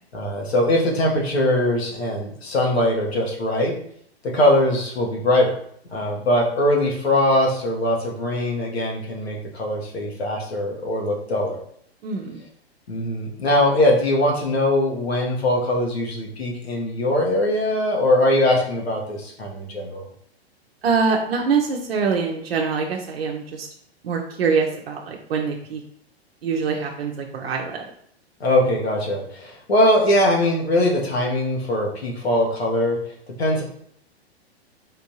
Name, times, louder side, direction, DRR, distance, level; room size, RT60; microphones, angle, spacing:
voice 1, 0.1-3.7 4.3-5.5 5.9-11.6 12.9-20.0 28.4-33.0 33.4-33.6, left 1 dB, 75° left, -2 dB, 1.3 m, -21 dB
voice 2, 12.0-12.4 20.8-23.7 24.0-25.8 26.4-27.9, right 5 dB, 65° right, 1 dB, 0.7 m, -24 dB
3.7 x 3.5 x 2.9 m, 0.67 s
figure-of-eight pair, 105°, 32 cm